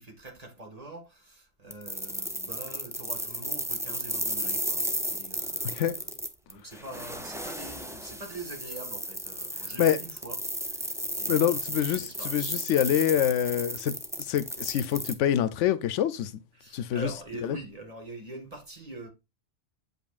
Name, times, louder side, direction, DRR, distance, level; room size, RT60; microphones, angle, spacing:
voice 1, 0.0-12.5 16.5-19.1, right 2 dB, 35° right, 1.8 m, -44 dB
sound 1, 1.7-15.1, equal, 5° right, 0.4 m, -34 dB
voice 2, 11.3-13.9 14.2-16.3 16.7-17.1, left 10 dB, 90° left, 0.9 m, -26 dB
7.8 x 5.4 x 2.4 m
omnidirectional pair, 1.2 m